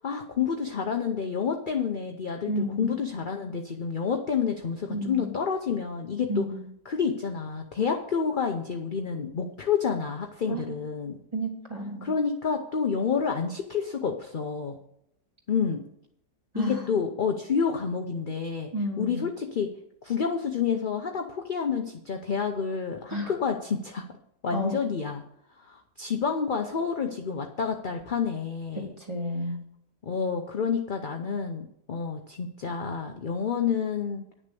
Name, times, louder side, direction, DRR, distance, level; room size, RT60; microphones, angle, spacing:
voice 1, 0.0-6.5 6.8-11.2 12.0-14.8 15.5-15.8 16.5-18.7 19.0-19.7 20.0-24.0 24.4-25.2 25.6-28.9 30.0-34.2, left 6 dB, 45° left, 3 dB, 0.7 m, -29 dB
voice 2, 2.5-2.9 4.9-5.3 6.3-6.6 10.5-10.7 11.3-12.1 16.5-16.9 18.7-19.2 23.1-23.3 24.5-24.7 29.1-29.6, equal, 15° right, -1 dB, 2.5 m, -31 dB
10.5 x 6.7 x 6.8 m, 0.75 s
omnidirectional pair, 1.7 m